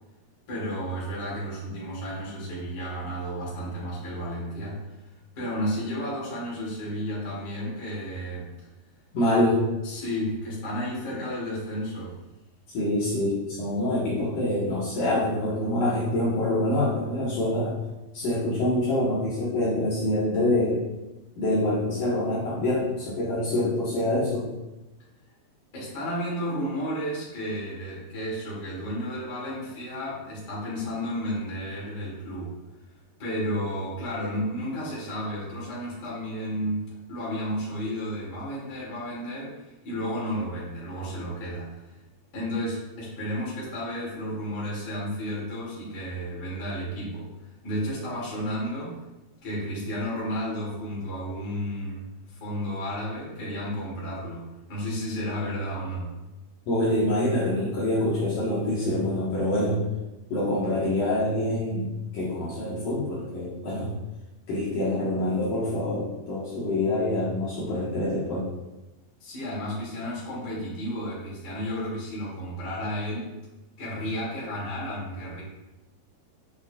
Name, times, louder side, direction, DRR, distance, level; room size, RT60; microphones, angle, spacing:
voice 1, 0.5-4.8 5.4-8.5 9.8-12.2 25.7-32.5 33.2-41.8 42.3-47.3 47.6-49.0 49.4-52.0 52.2-56.1 69.2-73.3 73.8-75.4, equal, 30° left, -7 dB, 2.5 m, -32 dB
voice 2, 9.1-9.6 12.7-17.8 18.1-20.8 21.4-24.5 56.7-59.8 60.3-63.9 64.5-68.5, left 1 dB, 60° left, -8 dB, 2.8 m, -26 dB
9.0 x 6.5 x 2.4 m, 1.0 s
omnidirectional pair, 4.7 m